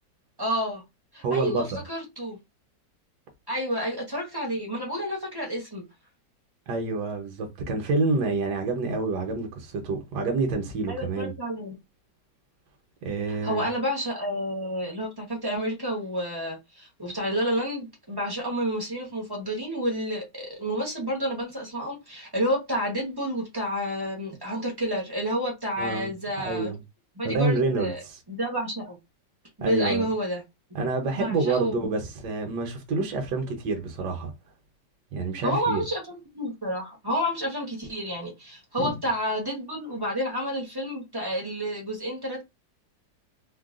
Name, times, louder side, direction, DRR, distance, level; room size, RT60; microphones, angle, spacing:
voice 1, 0.4-0.8 1.1-2.4 3.5-5.8 10.9-11.7 13.3-26.7 27.2-28.0 28.3-29.0 29.6-30.4 31.1-31.7 35.4-42.4, equal, 25° right, 0.6 m, -30 dB
voice 2, 1.2-1.6 6.7-11.3 13.0-13.7 25.8-26.8 27.2-27.9 29.6-30.1 30.7-34.3 35.1-35.8 38.8-39.0, right 3 dB, 70° right, 1.3 m, -28 dB
3.7 x 2.2 x 2.4 m
omnidirectional pair, 1.9 m